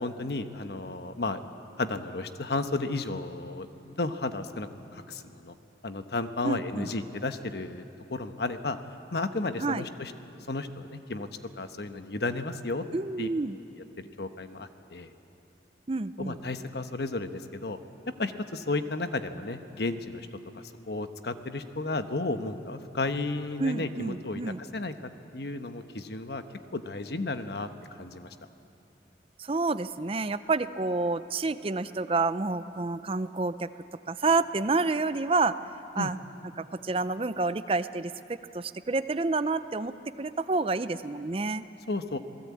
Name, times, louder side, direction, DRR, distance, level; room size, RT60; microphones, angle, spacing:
voice 1, 0.0-1.4 1.8-5.6 5.8-7.8 8.1-8.8 9.1-10.1 10.5-11.3 11.6-12.8 13.2-13.3 14.2-15.1 16.2-17.8 18.2-20.3 20.5-24.9 25.3-26.4 26.7-27.7 28.0-28.3 36.0-36.1 41.9-42.2, left 2 dB, 65° left, 8 dB, 1.1 m, -33 dB
voice 2, 6.4-6.9 9.6-9.9 12.9-13.6 15.9-16.4 23.6-24.6 29.4-33.7 34.1-35.5 36.0-36.2 36.6-41.6, right 3 dB, 30° right, 13 dB, 0.5 m, -29 dB
27.5 x 18.5 x 8.5 m, 2.9 s
head